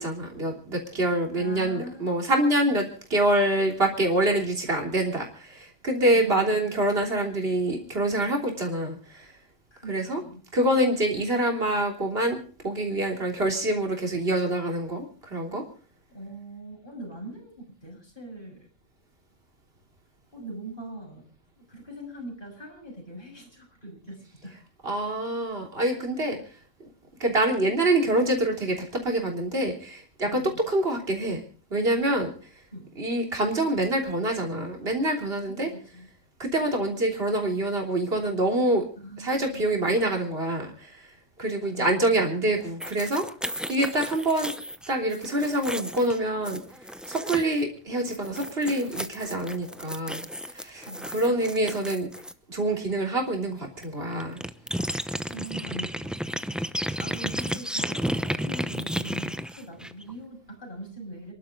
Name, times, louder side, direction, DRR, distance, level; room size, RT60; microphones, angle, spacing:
voice 1, 0.0-2.8 3.1-9.3 9.9-10.2 10.5-12.4 12.6-15.6 24.8-26.4 27.2-31.4 31.7-32.3 33.0-35.7 36.4-38.9 39.2-41.0 41.4-43.3 43.7-44.5 44.9-46.6 47.1-50.2 50.5-52.1 52.5-54.4, right 1 dB, 55° right, 1 dB, 3.6 m, -26 dB
voice 2, 1.3-2.1 2.7-2.8 6.1-6.7 9.7-10.4 16.1-18.7 20.3-21.3 21.6-24.6 30.2-30.6 32.7-32.9 35.4-36.1 39.0-39.7 41.6-42.3 50.9-51.5 55.3-56.4 57.0-61.3, right 1 dB, 45° left, 1 dB, 6.9 m, -41 dB
sound 1, 42.8-47.6 48.0-52.3 53.8-53.9 54.1-60.1, equal, ahead, 0.6 m, -33 dB
28.5 x 12.0 x 3.8 m, 0.39 s
omnidirectional pair, 1.2 m